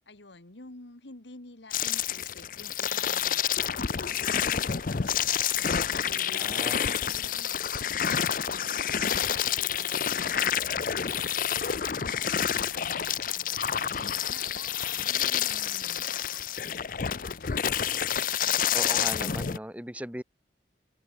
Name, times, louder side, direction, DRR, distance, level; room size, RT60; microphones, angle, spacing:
voice 1, 0.1-3.6 4.1-10.5 10.9-11.7 12.0-16.4 16.9-18.1, left 3 dB, 80° left, 2.0 m, -50 dB
sound 1, 1.7-19.6, left 9 dB, 50° left, 0.6 m, -28 dB
voice 2, 6.3-6.8 18.7-20.2, equal, 10° right, 1.8 m, -38 dB
open air
head